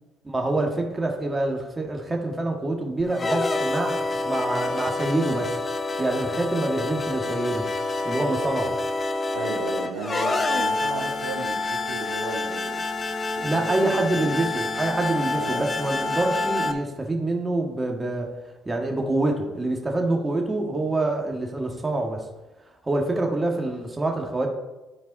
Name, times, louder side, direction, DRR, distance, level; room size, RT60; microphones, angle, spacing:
voice 1, 0.2-5.6 6.0-7.7 8.0-8.8 13.4-18.3 18.6-22.2 22.8-24.5, right 2 dB, 20° right, 2 dB, 1.6 m, -26 dB
sound 1, 3.1-16.7, left 3 dB, 35° left, 0.9 m, -27 dB
voice 2, 9.3-12.9 13.3-14.1 15.3-15.6, right 3 dB, 85° right, -2 dB, 1.7 m, -35 dB
11.5 x 4.6 x 4.1 m, 1.1 s
hypercardioid pair, 60°, 0 cm